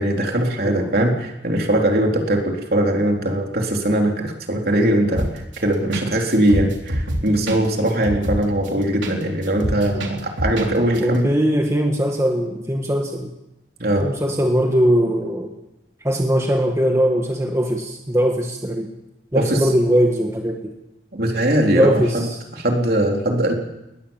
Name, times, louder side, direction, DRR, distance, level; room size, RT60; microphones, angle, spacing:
voice 1, 0.0-11.3 13.8-14.1 19.4-19.6 21.1-22.3 22.5-23.5, right 1 dB, 55° right, 1 dB, 3.8 m, -20 dB
voice 2, 0.6-1.0 9.9-10.0 11.0-13.4 14.0-15.6 16.0-18.9 19.3-20.7 21.7-22.4, equal, 15° right, 2 dB, 1.7 m, -20 dB
sound 1, 5.1-5.6 5.9-6.1 6.3-9.2 9.4-10.7 10.9-11.0, right 1 dB, 85° right, 3.7 m, -25 dB
21.5 x 20.0 x 7.3 m, 0.93 s
head